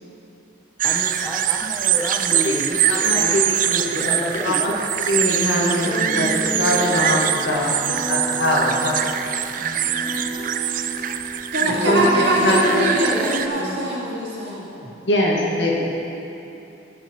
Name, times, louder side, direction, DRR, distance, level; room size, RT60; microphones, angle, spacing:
voice 1, 0.8-3.4 3.8-4.8 11.7-13.4 14.8-14.9, equal, 5° right, -4 dB, 0.6 m, -30 dB
sound 1, 0.8-13.5, right 10 dB, 45° right, 0.4 m, -23 dB
voice 2, 2.8-7.7 8.1-9.1 11.7-12.9 15.1-15.7, equal, 75° left, -3 dB, 1.7 m, -22 dB
sound 2, 5.6-13.7, right 1 dB, 15° left, 2.3 m, -32 dB
voice 3, 11.5-14.7, right 1 dB, 65° right, -4 dB, 2.1 m, -22 dB
15.0 x 6.1 x 4.5 m, 2.9 s
head